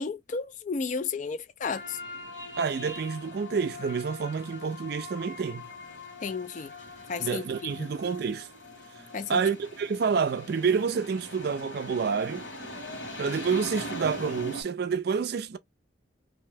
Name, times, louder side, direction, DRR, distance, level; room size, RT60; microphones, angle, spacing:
voice 1, 0.0-2.0 6.2-6.7 7.1-7.4 7.8-7.9 9.1-9.4, left 5 dB, 40° left, 0.3 m, -32 dB
sound 1, 1.6-14.6, left 1 dB, 65° left, 1.5 m, -41 dB
voice 2, 2.6-5.6 7.2-8.5 9.3-12.5 13.2-15.6, right 5 dB, 50° right, 0.3 m, -28 dB
2.8 x 2.1 x 3.3 m
head